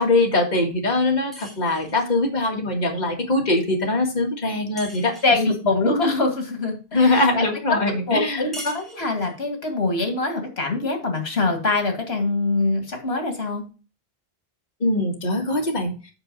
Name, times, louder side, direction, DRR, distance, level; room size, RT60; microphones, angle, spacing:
voice 1, 0.0-5.1 6.9-8.5 14.8-15.9, left 2 dB, 45° left, 0 dB, 1.9 m, -22 dB
sound 1, 1.3-2.2 4.8-5.5 8.5-9.5, equal, ahead, 2.3 m, -40 dB
voice 2, 5.2-7.4 8.1-13.6, left 3 dB, 75° left, 4 dB, 2.1 m, -24 dB
8.7 x 5.3 x 5.2 m, 0.35 s
omnidirectional pair, 1.0 m